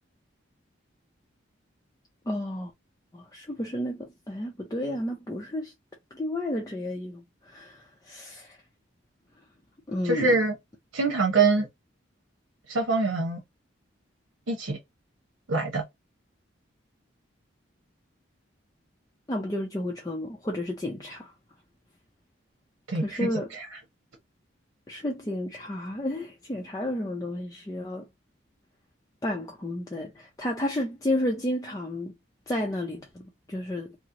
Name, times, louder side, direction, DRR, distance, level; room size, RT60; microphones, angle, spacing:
voice 1, 2.3-2.7 3.1-5.7 6.1-8.6 9.9-10.4 19.3-21.3 23.0-23.5 24.9-28.1 29.2-32.1 32.5-34.0, left 1 dB, 20° left, 0.4 m, -32 dB
voice 2, 10.0-10.6 10.9-11.7 12.7-13.4 14.5-14.8 15.5-15.8 22.9-23.7, right 3 dB, 90° right, 0.9 m, -24 dB
2.9 x 2.0 x 3.7 m
head